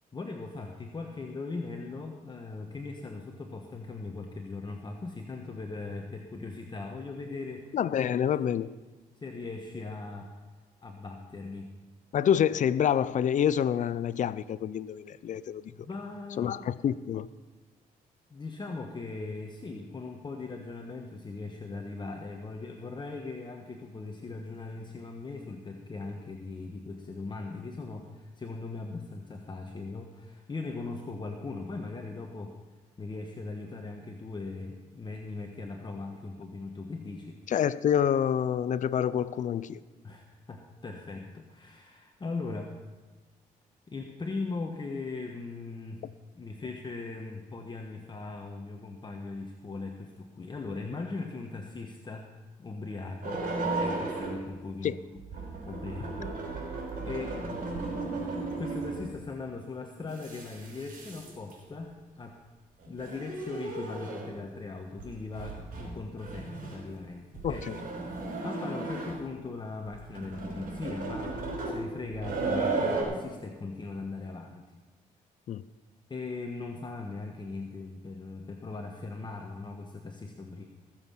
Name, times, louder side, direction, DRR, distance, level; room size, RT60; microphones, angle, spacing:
voice 1, 0.1-7.8 9.2-10.3 10.8-11.7 15.7-16.6 18.3-32.5 33.0-37.4 40.0-42.8 43.9-46.0 46.3-52.3 52.6-56.4 56.7-57.4 57.7-58.1 58.6-62.4 62.9-67.7 68.4-74.7 76.1-80.6, left 3 dB, 30° left, 1.2 m, -39 dB
voice 2, 7.7-8.8 12.1-15.6 16.4-17.3 37.5-39.8 54.8-55.0 67.4-67.7 75.5-75.6, left 9 dB, 55° left, 0.5 m, -27 dB
sound 1, 53.2-54.5 55.1-59.2 60.0-61.5 62.8-64.4 65.0-65.1 65.3-65.9 66.2-66.8 67.3-69.3 69.9-73.0, right 3 dB, 70° right, 5.2 m, -35 dB
20.0 x 7.5 x 5.7 m
cardioid pair, 85°, 15 cm